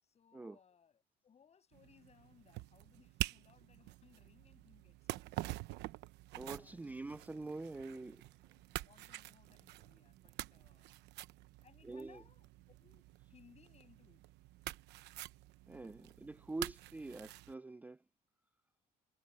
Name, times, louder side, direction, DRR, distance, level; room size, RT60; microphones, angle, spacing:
voice 1, 0.0-5.6 6.4-6.8 8.9-11.1 11.6-14.2 16.0-16.1, left 7 dB, 40° left, 7.9 m, -67 dB
sound 1, 1.7-17.5, right 17 dB, 85° right, 1.0 m, -47 dB
voice 2, 6.3-8.3 11.8-12.2 15.7-18.0, right 2 dB, 10° right, 0.4 m, -45 dB
cardioid pair, 110°, 17 cm